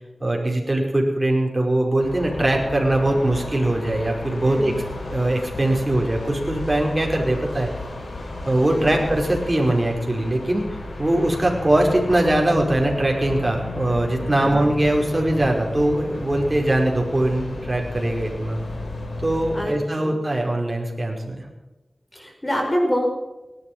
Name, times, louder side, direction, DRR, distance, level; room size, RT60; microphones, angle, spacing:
voice 1, 0.2-4.7 5.1-7.7 8.5-10.6 11.0-18.6 19.2-21.5, right 1 dB, 30° right, 0 dB, 5.0 m, -21 dB
sound 1, 2.0-19.7, left 2 dB, 75° left, 5.0 m, -33 dB
voice 2, 4.4-4.8 8.7-9.1 14.4-14.7 19.5-20.2 22.1-23.1, equal, 20° left, 1 dB, 5.1 m, -26 dB
18.5 x 12.0 x 5.7 m, 1.1 s
wide cardioid pair, 65°, 0 cm